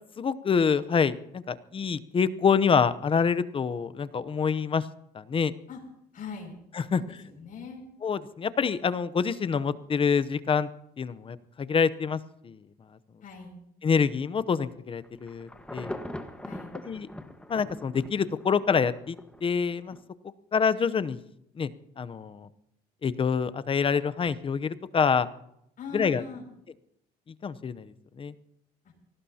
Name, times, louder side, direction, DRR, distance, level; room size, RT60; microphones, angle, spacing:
voice 1, 0.2-4.8 5.1-5.5 6.9-7.0 8.0-10.7 11.0-12.2 12.4-12.6 13.8-16.0 16.9-17.1 17.5-19.2 19.4-20.0 20.5-21.2 21.6-21.7 22.0-22.5 23.0-25.3 25.9-26.2 27.4-27.9 28.2-28.3, left 6 dB, 30° left, 15 dB, 0.8 m, -26 dB
voice 2, 6.1-6.6 6.9-7.9 13.2-13.6 16.4-16.8 25.8-26.5, left 5 dB, 50° left, 1 dB, 6.4 m, -40 dB
Insect / Thunder / Rain, 15.0-19.4 19.9-20.0, left 1 dB, 5° left, 1.4 m, -41 dB
24.5 x 18.0 x 2.9 m, 0.77 s
cardioid pair, 110°, 17 cm